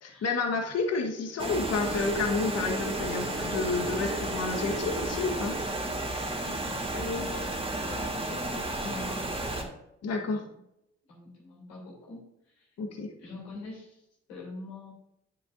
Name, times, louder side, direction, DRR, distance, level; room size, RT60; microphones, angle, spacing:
voice 1, 0.0-5.6 10.0-10.4 12.8-13.1, left 4 dB, 50° left, 3 dB, 1.4 m, -30 dB
sound 1, 1.4-9.6, right 2 dB, 15° right, 2.2 m, -32 dB
voice 2, 6.2-7.5 7.9-9.5 10.1-10.5 11.1-12.7 13.2-14.0 14.3-14.9, left 3 dB, 85° left, -4 dB, 3.1 m, -42 dB
10.5 x 6.7 x 2.6 m, 0.83 s
hypercardioid pair, 45°, 32 cm